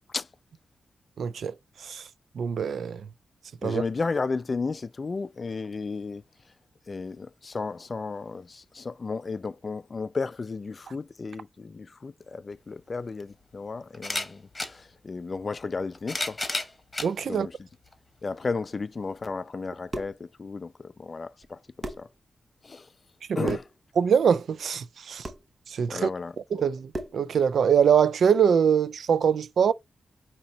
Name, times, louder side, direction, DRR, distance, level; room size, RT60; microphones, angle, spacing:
voice 1, 1.2-1.5 1.8-2.0 2.4-3.0 3.6-3.8 17.0-17.5 23.3-23.6 24.0-25.2 25.7-26.1 26.5-29.7, right 7 dB, 80° right, 0.3 m, -23 dB
voice 2, 3.6-6.2 6.9-16.4 17.3-17.6 18.2-22.1 22.6-22.9 23.4-23.7 25.9-26.4, left 4 dB, 40° left, 0.3 m, -33 dB
sound 1, 12.5-12.6 13.9-14.7 15.7-17.1 17.9-18.0 19.2-19.3, left 2 dB, 20° left, 1.3 m, -31 dB
sound 2, 19.9-20.2 21.4-21.5 21.8-22.1 23.4-23.8 25.2-25.5 26.9-27.3, right 1 dB, 35° right, 0.8 m, -36 dB
5.1 x 2.8 x 2.8 m
cardioid pair, 90°, 0 cm